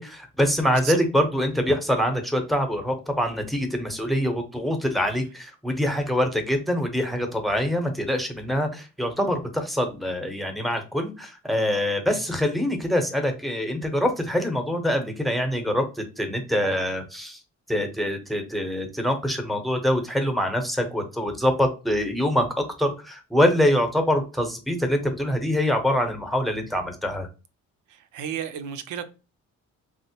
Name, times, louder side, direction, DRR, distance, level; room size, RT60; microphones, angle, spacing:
voice 1, 0.0-17.4 17.7-27.3, equal, ahead, 0.8 m, -24 dB
voice 2, 27.9-29.1, right 8 dB, 80° right, 0.5 m, -33 dB
4.2 x 2.0 x 2.8 m
cardioid pair, 90°, 30 cm